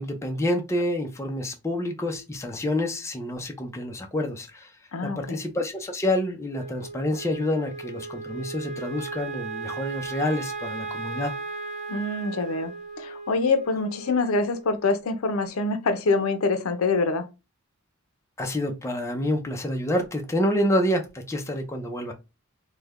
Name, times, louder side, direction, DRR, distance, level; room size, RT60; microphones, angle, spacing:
voice 1, 0.0-4.7 5.0-11.3 18.4-22.1, left 1 dB, 15° left, 0.5 m, -28 dB
voice 2, 4.9-5.4 11.9-12.7 13.0-17.3, left 3 dB, 75° left, 0.5 m, -25 dB
Wind instrument woodwind instrument, 6.5-15.0, right 4 dB, 30° right, 0.7 m, -36 dB
3.2 x 2.1 x 3.5 m
head